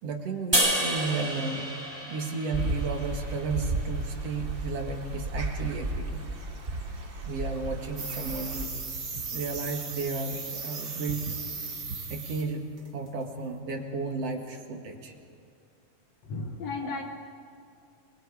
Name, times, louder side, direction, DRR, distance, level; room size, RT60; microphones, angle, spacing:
voice 1, 0.0-1.7 2.1-6.3 7.2-8.7 9.3-11.3 12.1-12.6 12.9-15.1 16.8-17.0, right 4 dB, 55° right, 2 dB, 2.7 m, -33 dB
sound 1, 0.5-3.8, right 1 dB, 10° right, 2.3 m, -30 dB
sound 2, 2.5-8.6, right 2 dB, 90° right, 0.5 m, -33 dB
sound 3, 8.0-12.5 12.8-13.1, right 4 dB, 40° right, 2.1 m, -36 dB
voice 2, 16.2-17.0, left 3 dB, 60° left, 3 dB, 2.3 m, -34 dB
29.5 x 22.0 x 4.8 m, 2.5 s
omnidirectional pair, 3.5 m